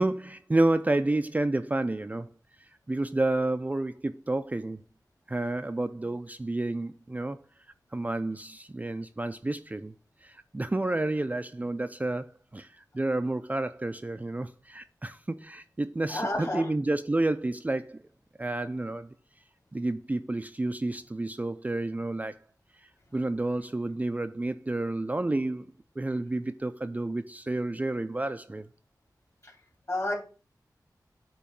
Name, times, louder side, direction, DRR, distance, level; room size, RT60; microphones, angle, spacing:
voice 1, 0.0-2.3 2.9-4.8 5.3-7.4 7.9-9.9 10.2-12.7 12.9-18.0 18.4-19.1 19.7-22.4 23.1-25.7 26.0-28.7, right 2 dB, 20° right, 0.4 m, -30 dB
voice 2, 16.1-16.7 29.9-30.2, left 1 dB, 45° left, 2.8 m, -29 dB
8.4 x 3.1 x 5.8 m
wide cardioid pair, 85°, 7 cm